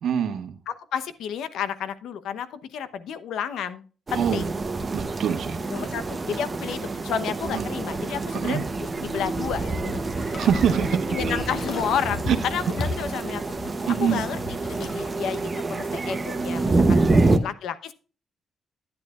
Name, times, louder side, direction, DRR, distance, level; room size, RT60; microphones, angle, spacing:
voice 1, 0.0-0.6 4.1-4.5 4.9-5.6 7.5-7.7 8.3-8.6 10.4-11.2 12.3-12.4 13.9-14.2 17.1-17.4, right 8 dB, 65° right, 1.3 m, -25 dB
voice 2, 0.7-3.8 4.1-4.6 5.7-10.0 11.1-13.4 14.0-14.4 14.7-17.0 17.4-17.9, left 8 dB, 85° left, 0.8 m, -31 dB
sound 1, 4.1-17.4, right 3 dB, 20° right, 0.8 m, -27 dB
sound 2, 9.3-15.1, left 3 dB, 50° left, 1.6 m, -37 dB
11.0 x 10.5 x 2.4 m
cardioid pair, 160°, 0 cm